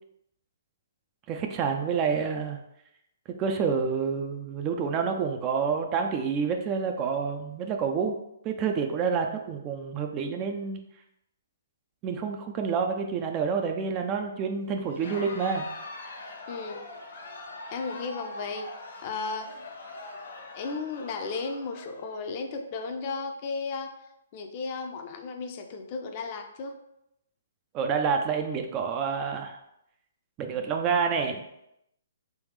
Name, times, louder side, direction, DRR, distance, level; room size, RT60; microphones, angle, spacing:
voice 1, 1.3-2.6 3.3-8.2 8.4-10.8 12.0-15.7 27.7-29.6 30.4-31.4, right 6 dB, 25° right, 4 dB, 0.4 m, -28 dB
Crowd, 14.8-22.4, left 2 dB, 65° left, 0.9 m, -43 dB
voice 2, 16.5-16.8 17.7-18.7 19.0-19.5 20.5-23.9 24.3-26.8, left 4 dB, 40° left, 5 dB, 0.5 m, -34 dB
3.4 x 3.1 x 3.2 m, 0.81 s
hypercardioid pair, 140°, 0 cm